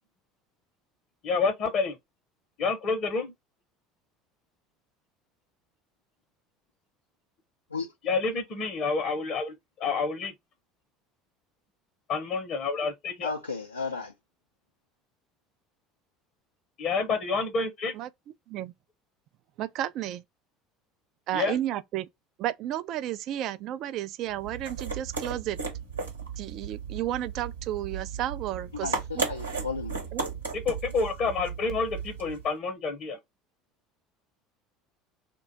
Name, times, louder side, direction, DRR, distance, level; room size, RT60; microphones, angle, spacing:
voice 1, 1.2-2.0 2.6-3.3 8.0-10.3 12.1-13.3 16.8-17.9 21.3-21.6 30.5-33.2, left 4 dB, 50° left, 0.7 m, -28 dB
voice 2, 13.2-14.1 28.7-30.0, left 4 dB, 85° left, 0.4 m, -34 dB
voice 3, 19.6-20.2 21.3-22.1 22.4-25.6 26.4-29.2 30.1-30.3, right 12 dB, 50° right, 0.3 m, -32 dB
sound 1, 24.3-32.5, right 5 dB, 85° right, 0.9 m, -35 dB
2.3 x 2.2 x 3.8 m
figure-of-eight pair, 65°, 0 cm